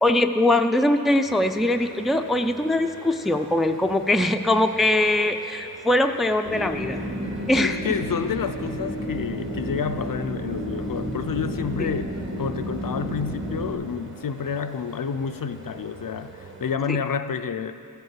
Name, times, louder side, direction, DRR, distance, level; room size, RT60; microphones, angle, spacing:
voice 1, 0.0-7.0 7.5-7.8 11.8-11.9 16.9-17.0, left 1 dB, ahead, 6 dB, 0.4 m, -22 dB
sound 1, 1.3-16.8, right 3 dB, 30° right, 1.1 m, -44 dB
sound 2, 6.4-13.7, equal, 75° right, 2.6 m, -31 dB
voice 2, 7.6-17.7, left 6 dB, 60° left, 9 dB, 0.5 m, -29 dB
14.5 x 5.5 x 7.4 m, 2.5 s
wide cardioid pair, 65°, 39 cm